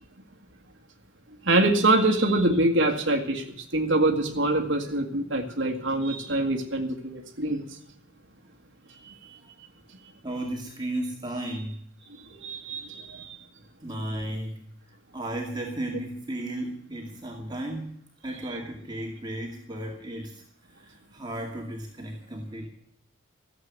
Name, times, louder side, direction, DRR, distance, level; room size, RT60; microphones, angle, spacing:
voice 1, 1.4-3.4 3.7-7.6 9.0-9.1 12.3-13.4, right 2 dB, 60° right, 1.9 m, -24 dB
voice 2, 10.2-11.8 13.8-14.8 15.1-20.4 20.7-22.7, right 1 dB, 20° right, 2.2 m, -34 dB
14.5 x 8.1 x 9.4 m
head